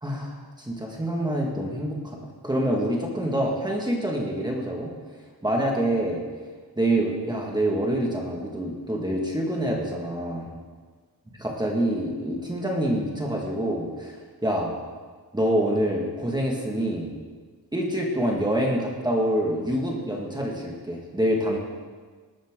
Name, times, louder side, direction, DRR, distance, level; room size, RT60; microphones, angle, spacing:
voice 1, 0.0-4.9 5.4-6.2 6.8-10.5 11.4-14.7 15.3-17.1 17.7-21.6, right 1 dB, 10° right, -2 dB, 1.7 m, -26 dB
20.0 x 13.0 x 3.8 m, 1.5 s
wide cardioid pair, 175°, 40 cm